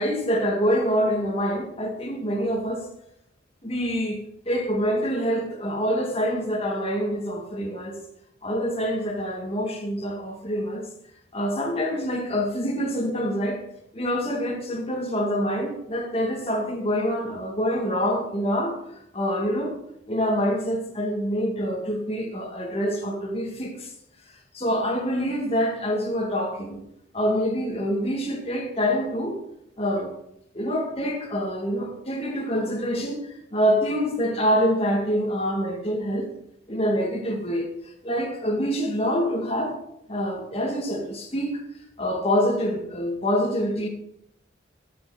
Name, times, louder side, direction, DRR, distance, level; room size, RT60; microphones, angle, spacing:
voice 1, 0.0-2.9 3.6-4.2 4.5-8.0 8.4-10.9 11.3-13.6 13.9-18.8 19.1-19.8 20.1-23.9 24.5-26.8 27.1-29.4 29.8-30.2 30.5-36.3 36.7-39.8 40.1-41.6 42.0-43.9, equal, 30° left, 2.0 m, -26 dB
13.5 x 7.0 x 4.9 m
head